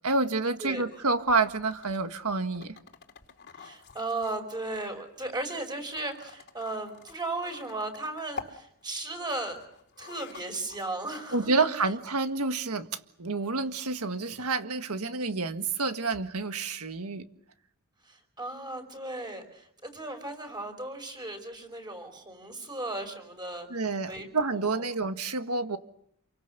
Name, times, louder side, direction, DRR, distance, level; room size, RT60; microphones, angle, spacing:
voice 1, 0.0-2.8 11.3-12.9 13.2-17.3 23.7-25.8, right 3 dB, 80° right, 8 dB, 1.7 m, -28 dB
voice 2, 0.6-0.9 3.6-9.6 10.0-11.7 18.1-23.7 24.1-24.9, right 2 dB, 20° right, 5 dB, 5.2 m, -36 dB
sound 1, 0.9-12.6, left 5 dB, 50° left, 2.7 m, -49 dB
28.0 x 24.0 x 6.8 m, 0.73 s
head